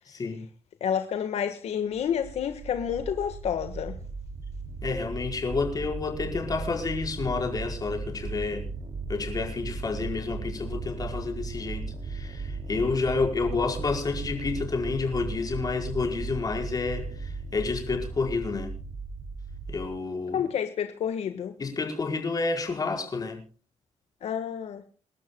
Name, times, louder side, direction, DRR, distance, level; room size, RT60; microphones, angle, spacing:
voice 1, 0.8-3.9 20.3-21.5 24.2-24.8, left 8 dB, 70° left, 1.5 m, -29 dB
sound 1, 2.0-19.9, right 4 dB, 50° right, 2.9 m, -36 dB
voice 2, 4.8-8.7 9.1-18.7 19.7-20.5 21.6-23.4, left 4 dB, 35° left, 5.0 m, -30 dB
29.0 x 12.0 x 2.3 m
cardioid pair, 135°, 11 cm